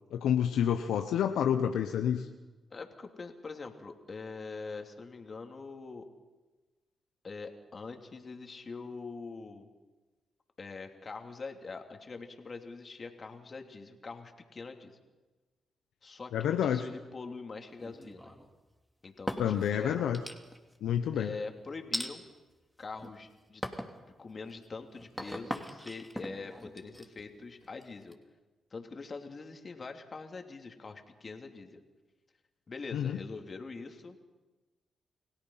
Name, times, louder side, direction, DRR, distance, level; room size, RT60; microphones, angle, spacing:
voice 1, 0.1-2.3 16.3-16.8 19.4-20.2 20.8-21.3 32.9-33.2, left 9 dB, 80° left, 7 dB, 1.0 m, -28 dB
voice 2, 2.7-6.1 7.2-9.7 10.6-15.0 16.0-18.3 19.0-20.1 21.1-22.2 22.8-23.6 24.2-28.2 28.7-31.8 32.7-34.2, left 4 dB, 45° left, 4 dB, 3.1 m, -43 dB
sound 1, 17.8-18.5 19.0-19.7 20.1-20.8 21.9-22.1 22.8-23.2 23.6-24.0 24.4-28.1, equal, 5° right, 3.0 m, -39 dB
29.5 x 17.0 x 5.8 m, 1.2 s
supercardioid pair, 50°, 0 cm